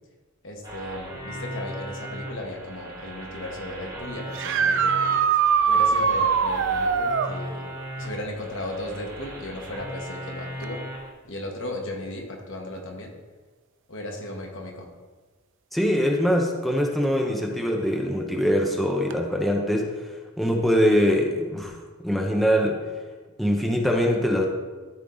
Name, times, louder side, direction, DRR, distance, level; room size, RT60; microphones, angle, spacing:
voice 1, 0.4-7.7 8.0-10.8 11.2-13.1 13.9-14.9, left 1 dB, 65° left, 1 dB, 1.5 m, -36 dB
sound 1, 0.6-11.1, right 1 dB, 20° right, 2.4 m, -38 dB
sound 2, 4.3-7.3 10.6-10.7 12.8-12.9 19.1-19.2, right 6 dB, 65° right, 0.5 m, -22 dB
voice 2, 15.7-19.9 20.4-21.7 22.0-22.8 23.4-24.5, equal, ahead, 0 dB, 0.8 m, -23 dB
13.5 x 4.6 x 3.9 m, 1.3 s
head